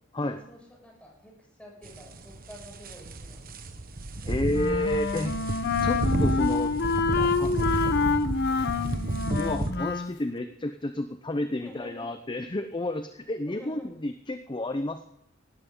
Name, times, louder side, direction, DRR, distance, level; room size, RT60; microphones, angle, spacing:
voice 1, 0.3-3.5 6.2-6.6 7.0-8.9 11.6-12.1 13.4-13.9, equal, 5° left, -2 dB, 6.4 m, -49 dB
sound 1, 1.8-9.7, right 1 dB, 45° right, 1.2 m, -31 dB
voice 2, 4.2-5.3 5.8-6.7 7.4-7.5 9.3-15.1, left 1 dB, 25° left, 9 dB, 0.6 m, -30 dB
Wind instrument woodwind instrument, 4.5-10.2, left 4 dB, 55° left, 0.9 m, -27 dB
18.5 x 14.0 x 3.8 m, 0.80 s
head